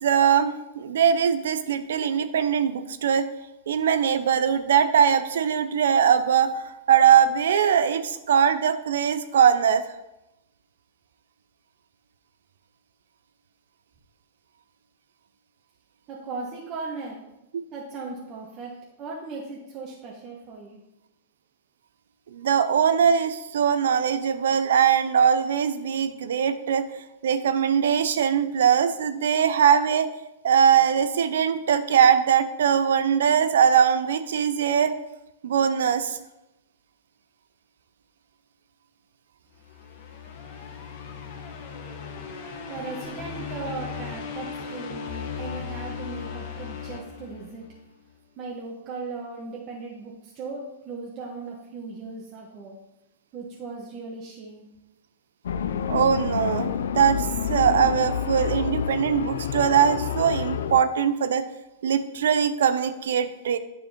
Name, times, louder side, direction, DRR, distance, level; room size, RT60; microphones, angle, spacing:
voice 1, 0.0-3.3 3.7-6.5 6.9-9.8 22.3-26.8 27.2-30.1 30.4-34.9 35.4-36.2 55.9-61.4 61.8-63.6, right 8 dB, 75° right, 12 dB, 0.6 m, -21 dB
voice 2, 16.1-17.2 17.7-18.7 19.0-20.8 42.6-47.7 48.4-52.7 53.3-54.7, right 4 dB, 35° right, -3 dB, 1.4 m, -37 dB
sound 1, 39.6-47.9, left 6 dB, 55° left, 1.5 m, -37 dB
sound 2, 55.4-60.8, left 8 dB, 80° left, 0.5 m, -28 dB
9.4 x 4.9 x 4.4 m, 0.93 s
hypercardioid pair, 120°, 0 cm